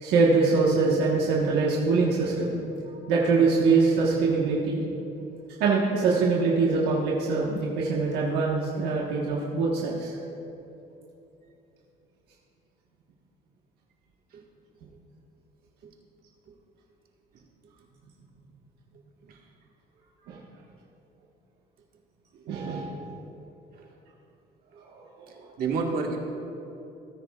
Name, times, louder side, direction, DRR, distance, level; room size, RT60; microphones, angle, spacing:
voice 1, 0.0-2.5 3.1-4.8 5.6-10.1 20.3-20.4 22.5-23.1 25.2-25.5, right 4 dB, 80° right, -4 dB, 1.4 m, -23 dB
voice 2, 25.6-26.2, right 4 dB, 60° right, 0 dB, 1.7 m, -29 dB
18.5 x 9.7 x 2.4 m, 2.9 s
cardioid pair, 110°, 17 cm